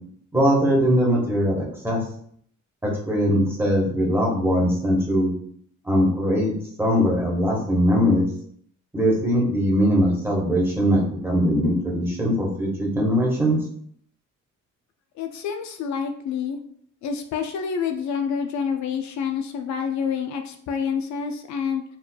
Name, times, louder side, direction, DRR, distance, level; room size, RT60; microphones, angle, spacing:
voice 1, 0.3-2.0 2.8-5.3 5.8-6.5 6.8-8.3 8.9-13.6, equal, 10° right, -3 dB, 1.4 m, -21 dB
voice 2, 15.2-16.6 17.0-21.8, left 6 dB, 70° left, 5 dB, 0.5 m, -28 dB
4.5 x 3.1 x 2.2 m, 0.64 s
cardioid pair, 90°, 30 cm